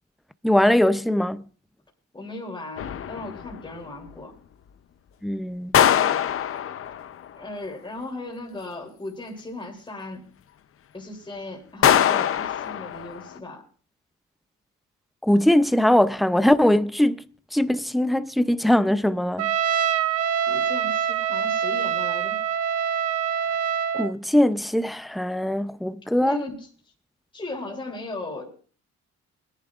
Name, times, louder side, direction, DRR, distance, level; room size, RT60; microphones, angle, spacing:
voice 1, 0.4-1.4 5.2-5.8 15.2-17.2 17.5-19.5 23.9-26.4, left 1 dB, ahead, 0.5 m, -21 dB
voice 2, 2.1-4.3 7.4-10.2 10.9-13.6 20.5-22.4 26.2-26.7 27.3-28.6, left 2 dB, 15° left, 3.0 m, -37 dB
sound 1, 2.8-3.7 5.7-7.3 11.8-13.4, left 9 dB, 45° left, 0.6 m, -22 dB
Trumpet, 19.4-24.1, right 8 dB, 55° right, 0.7 m, -25 dB
22.0 x 10.5 x 2.4 m
cardioid pair, 90°, 30 cm